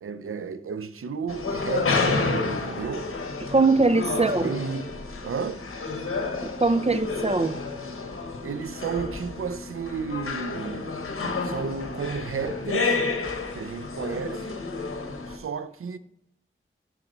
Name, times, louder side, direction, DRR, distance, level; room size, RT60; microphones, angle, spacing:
voice 1, 0.0-3.1 4.1-4.9 5.2-5.7 8.4-10.9 11.4-13.0 13.5-14.6 15.3-16.0, right 5 dB, 90° right, 0.5 m, -33 dB
sound 1, 1.3-15.4, left 3 dB, 85° left, 1.1 m, -30 dB
voice 2, 3.5-4.5 6.4-7.6, right 3 dB, 30° right, 0.6 m, -21 dB
12.0 x 4.2 x 3.9 m
wide cardioid pair, 45°, 21 cm